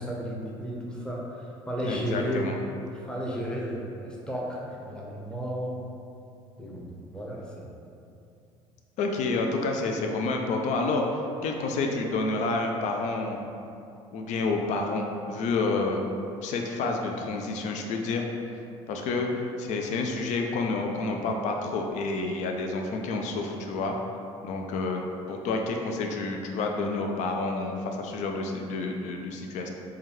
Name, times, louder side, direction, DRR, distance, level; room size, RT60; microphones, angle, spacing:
voice 1, 0.0-2.5 2.9-5.8 6.6-7.8, equal, 5° left, -4 dB, 0.8 m, -33 dB
voice 2, 1.8-2.5 9.0-13.4 14.1-16.0 16.4-18.3 18.9-24.0 24.4-25.0 25.3-29.7, left 3 dB, 55° left, 2 dB, 0.4 m, -29 dB
3.4 x 2.2 x 3.0 m, 2.6 s
hypercardioid pair, 65°, 15 cm